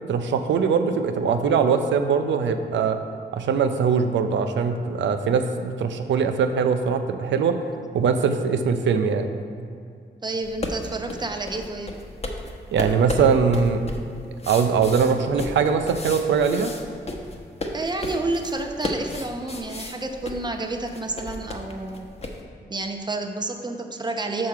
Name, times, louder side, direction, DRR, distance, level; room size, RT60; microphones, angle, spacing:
voice 1, 0.1-3.0 3.3-7.6 7.9-9.4 12.7-13.8 14.5-16.7, right 6 dB, 80° right, 7 dB, 0.6 m, -21 dB
voice 2, 10.2-11.9 17.7-22.1 22.7-24.5, right 2 dB, 25° right, 4 dB, 0.8 m, -29 dB
sound 1, 10.4-22.4, left 1 dB, 35° left, 1.0 m, -35 dB
6.3 x 5.7 x 4.7 m, 2.3 s
cardioid pair, 55°, 19 cm